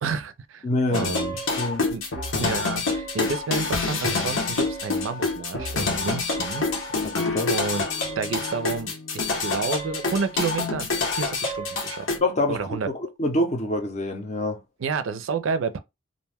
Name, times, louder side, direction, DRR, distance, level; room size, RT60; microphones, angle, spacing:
voice 1, 0.0-0.7 0.9-1.4 1.9-2.0 2.4-7.0 7.5-7.8 8.2-12.1 12.5-12.9 14.8-15.8, right 4 dB, 75° right, 0.4 m, -30 dB
voice 2, 0.6-1.9 7.0-7.5 12.2-14.6, left 1 dB, 35° left, 0.6 m, -26 dB
sound 1, 0.9-12.2, left 3 dB, 80° left, 0.9 m, -27 dB
2.5 x 2.1 x 3.3 m
head